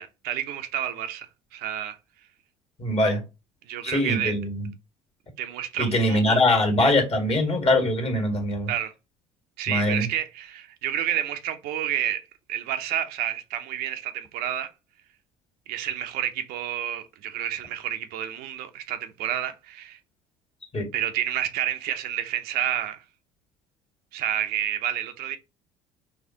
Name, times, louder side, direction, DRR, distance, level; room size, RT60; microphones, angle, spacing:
voice 1, 0.0-2.0 3.7-4.3 5.4-6.4 8.7-8.9 9.6-12.2 12.5-14.7 15.7-20.0 20.9-23.0 24.1-25.4, right 11 dB, 65° right, 0.6 m, -29 dB
voice 2, 2.8-3.2 3.8-4.7 5.8-8.7 9.7-10.1 20.7-20.9, left 1 dB, 35° left, 1.5 m, -22 dB
4.2 x 2.3 x 2.8 m
hypercardioid pair, 70°, 17 cm